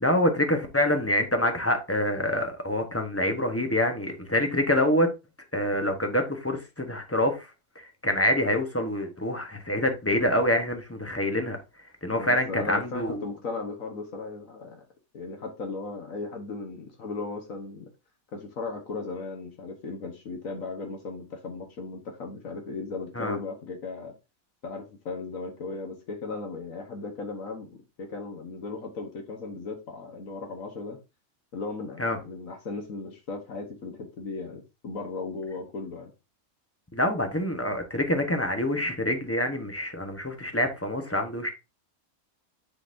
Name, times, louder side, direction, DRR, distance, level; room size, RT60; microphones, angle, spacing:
voice 1, 0.0-5.1 5.5-7.5 7.8-11.6 12.0-13.2 23.1-23.4 32.0-32.2 36.9-41.5, left 1 dB, 10° left, 0.9 m, -26 dB
voice 2, 12.2-14.8 15.1-17.9 18.3-24.1 24.6-27.7 28.0-31.0 31.5-36.1, left 3 dB, 70° left, 1.5 m, -36 dB
9.8 x 3.9 x 2.6 m
omnidirectional pair, 1.5 m